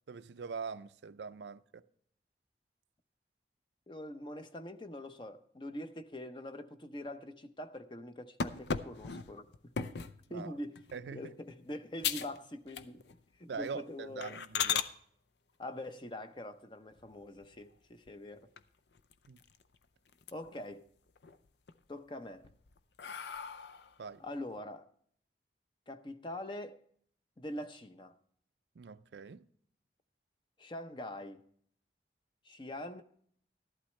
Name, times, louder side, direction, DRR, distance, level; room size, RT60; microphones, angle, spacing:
voice 1, 0.1-1.8 10.3-10.6 10.9-11.2 13.5-14.8 19.3-19.4 24.0-24.2 28.8-29.5, right 5 dB, 80° right, 0.5 m, -43 dB
voice 2, 3.9-9.7 10.3-10.8 11.1-13.0 13.4-14.4 15.6-18.5 20.3-20.8 21.9-22.5 24.2-24.9 25.9-26.8 27.4-28.1 30.6-31.4 32.4-33.0, left 1 dB, 25° left, 0.6 m, -44 dB
sound 1, 8.4-10.2 10.8-11.1 11.5-11.6 12.0-12.4 12.7-13.2 13.6-13.7 14.2-14.9 16.9-17.6 18.1-18.2 18.6-18.7 18.9-19.7 20.1-20.7 21.1-21.7 22.3-24.0, left 7 dB, 80° left, 0.6 m, -37 dB
13.5 x 11.5 x 3.2 m
head